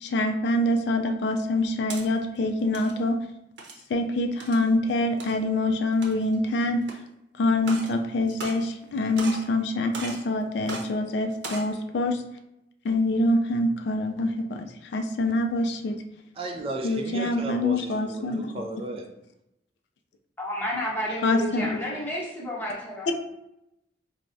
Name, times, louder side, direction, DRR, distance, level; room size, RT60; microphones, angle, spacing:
voice 1, 0.0-3.2 3.9-6.8 7.4-12.2 12.8-16.0 16.8-18.5 21.2-21.8, left 1 dB, 70° left, 5 dB, 0.3 m, -25 dB
sound 1, 1.5-2.1 2.6-2.9 3.6-3.9 4.4-4.6 5.2-5.3 5.9-6.4 6.9-7.0 7.6-7.9 8.3-8.9 9.2-9.5 9.9-10.3 10.7-10.9 11.3-11.7, right 3 dB, 90° right, 0.6 m, -37 dB
voice 2, 16.4-19.1, right 2 dB, 30° right, 2 dB, 0.3 m, -34 dB
voice 3, 20.4-23.1, left 1 dB, 10° left, -5 dB, 0.8 m, -31 dB
4.5 x 2.0 x 2.6 m, 0.85 s
head